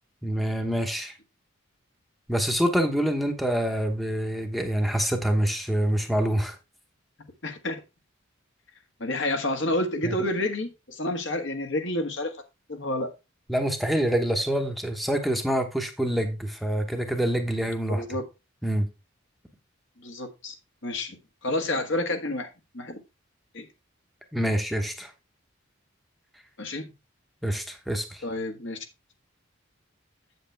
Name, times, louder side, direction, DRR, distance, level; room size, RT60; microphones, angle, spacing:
voice 1, 0.2-1.1 2.3-6.6 10.0-10.2 13.5-18.0 18.6-18.9 24.3-25.1 27.4-28.2, right 1 dB, ahead, 0.9 m, -26 dB
voice 2, 7.4-7.8 9.0-12.4 12.7-13.1 17.9-18.2 20.0-20.5 20.8-22.5 22.7-23.0 23.5-23.7 26.6-26.9 28.2-28.9, left 1 dB, 60° left, 1.5 m, -29 dB
7.9 x 7.8 x 3.3 m
head